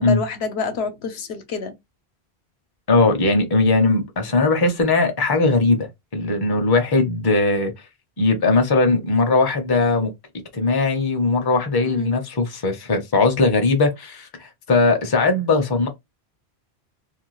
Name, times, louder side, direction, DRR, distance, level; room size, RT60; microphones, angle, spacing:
voice 1, 0.0-1.7 11.8-12.1, left 4 dB, 75° left, 0.9 m, -28 dB
voice 2, 2.9-5.9 6.1-7.7 8.2-10.1 10.5-15.9, left 3 dB, 25° left, 0.6 m, -19 dB
2.6 x 2.2 x 3.0 m
omnidirectional pair, 1.1 m